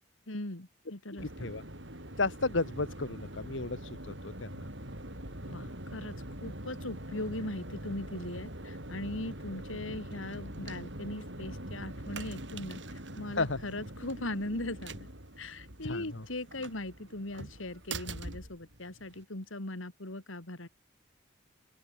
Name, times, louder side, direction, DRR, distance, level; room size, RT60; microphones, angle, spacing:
voice 1, 0.3-1.5 5.4-15.1 15.4-20.7, left 2 dB, 85° left, 2.9 m, -39 dB
sound 1, 1.2-19.2, right 1 dB, 65° right, 7.5 m, -43 dB
voice 2, 2.2-4.6 13.3-13.6 15.8-16.2, left 3 dB, 70° left, 1.6 m, -33 dB
open air
head